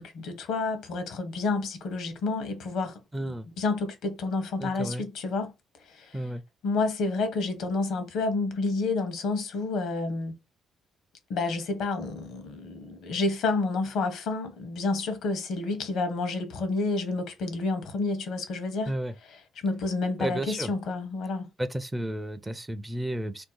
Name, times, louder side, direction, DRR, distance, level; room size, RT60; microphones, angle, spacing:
voice 1, 0.0-5.5 5.9-6.1 6.6-10.3 11.3-18.9 19.6-21.5, left 3 dB, 80° left, 0.8 m, -29 dB
voice 2, 3.1-3.5 4.6-5.0 6.1-6.4 18.9-19.1 20.2-20.7 21.6-23.4, right 1 dB, 15° right, 0.4 m, -32 dB
2.6 x 2.2 x 3.8 m
cardioid pair, 90°, 0 cm